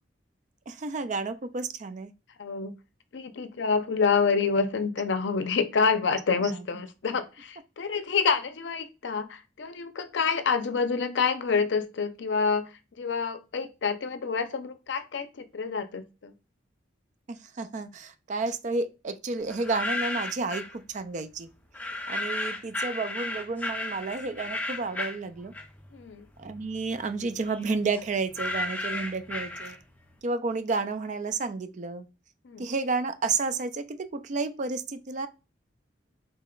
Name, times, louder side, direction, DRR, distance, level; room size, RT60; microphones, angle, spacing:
voice 1, 0.7-2.1 6.5-6.6 17.3-21.5 22.1-25.5 26.4-29.8 30.2-32.1 32.6-35.3, right 4 dB, 40° right, 0.4 m, -31 dB
voice 2, 2.4-2.7 3.1-12.7 13.0-16.3 25.9-26.3 32.4-32.7, left 5 dB, 70° left, 0.5 m, -27 dB
sound 1, 19.5-20.8 21.7-26.0 26.3-30.1, left 2 dB, 10° left, 0.6 m, -34 dB
3.9 x 2.2 x 3.7 m
head